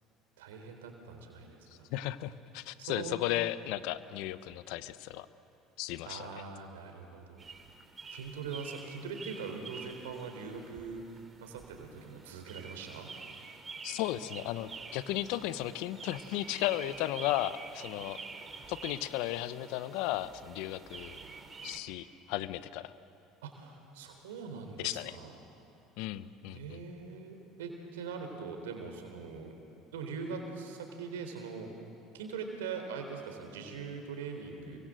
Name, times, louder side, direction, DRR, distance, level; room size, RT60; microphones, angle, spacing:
voice 1, 0.4-1.9 2.8-3.2 6.0-7.5 8.1-11.0 11.4-13.1 23.4-25.3 26.5-29.5 29.9-31.7 32.1-34.8, right 5 dB, 85° right, 5 dB, 3.9 m, -42 dB
voice 2, 1.9-5.3 5.8-6.3 13.8-18.2 18.7-21.2 21.6-22.9 24.8-25.2 26.0-26.8, left 15 dB, 70° left, 14 dB, 1.0 m, -35 dB
sound 1, 7.4-21.8, right 4 dB, 30° right, 3.4 m, -48 dB
29.5 x 24.0 x 7.8 m, 2.8 s
hypercardioid pair, 70°, 0 cm